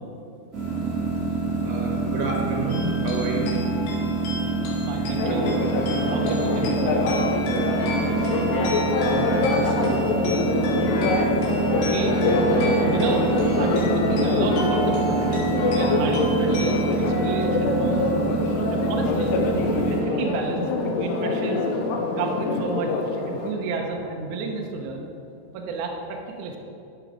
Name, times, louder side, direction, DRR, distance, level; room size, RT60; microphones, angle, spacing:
sound 1, 0.5-20.0, right 3 dB, 20° right, 2.4 m, -26 dB
voice 1, 1.6-3.5 8.9-10.1, right 4 dB, 70° right, -1 dB, 3.6 m, -30 dB
sound 2, 2.7-16.9, left 3 dB, 60° left, 3.5 m, -37 dB
voice 2, 4.6-6.8 11.5-12.2 12.6-18.1 18.7-19.3 19.8-21.7 22.2-25.1 25.5-26.6, right 3 dB, 85° right, 1 dB, 1.7 m, -31 dB
Church bell, 5.2-23.5, left 3 dB, 75° left, 2.9 m, -25 dB
12.0 x 7.5 x 5.1 m, 2.6 s
omnidirectional pair, 5.2 m